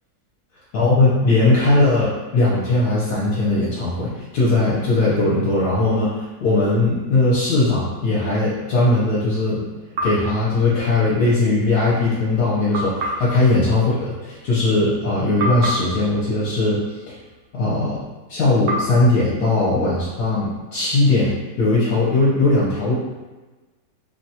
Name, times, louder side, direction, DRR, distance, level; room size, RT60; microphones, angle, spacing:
voice 1, 0.7-9.6 10.0-16.8 17.5-18.0 18.3-23.0, left 2 dB, 70° left, -8 dB, 1.2 m, -19 dB
sound 1, 9.9-11.3 12.7-15.0 15.4-17.7 18.7-20.5, equal, 70° right, 0.7 m, -31 dB
3.0 x 2.2 x 2.7 m, 1.2 s
omnidirectional pair, 1.9 m